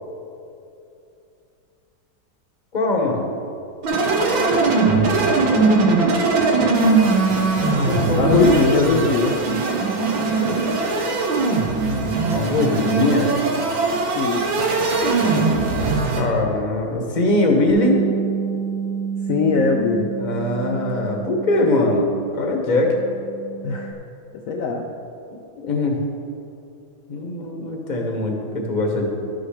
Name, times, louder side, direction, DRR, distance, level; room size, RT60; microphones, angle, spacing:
voice 1, 2.7-3.3 7.7-9.1 12.3-13.3 16.2-18.0 20.2-22.1 22.3-22.9 25.6-26.0 27.1-29.1, left 2 dB, 30° left, 1 dB, 1.0 m, -21 dB
sound 1, 3.8-16.2, right 3 dB, 85° right, 1.9 m, -20 dB
voice 2, 8.2-9.4 14.2-14.5 19.3-20.1 23.6-23.9 24.3-24.8, left 4 dB, 75° left, 2 dB, 0.7 m, -20 dB
Bass guitar, 17.7-22.4 22.7-23.9, right 6 dB, 60° right, 1.4 m, -29 dB
12.0 x 6.3 x 4.9 m, 2.7 s
omnidirectional pair, 2.1 m